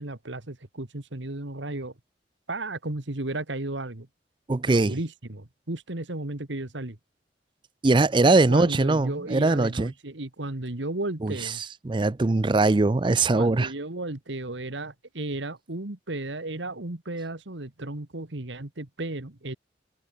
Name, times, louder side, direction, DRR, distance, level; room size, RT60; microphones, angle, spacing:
voice 1, 0.0-1.9 2.5-4.1 4.7-7.0 8.2-11.6 13.4-19.5, right 2 dB, 75° right, 1.9 m, -34 dB
voice 2, 4.5-4.9 7.8-9.9 11.2-11.3 11.8-13.7, right 3 dB, 25° right, 0.4 m, -21 dB
head